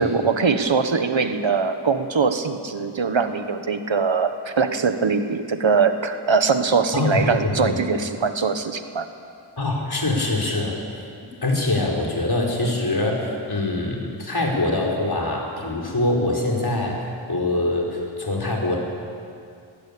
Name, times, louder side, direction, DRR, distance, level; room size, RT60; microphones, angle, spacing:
voice 1, 0.0-9.1, right 5 dB, 65° right, 8 dB, 1.5 m, -22 dB
voice 2, 6.9-7.7 9.6-10.8 11.4-18.8, left 2 dB, 50° left, -1 dB, 5.1 m, -24 dB
20.5 x 16.0 x 8.7 m, 2.4 s
wide cardioid pair, 55°, 50 cm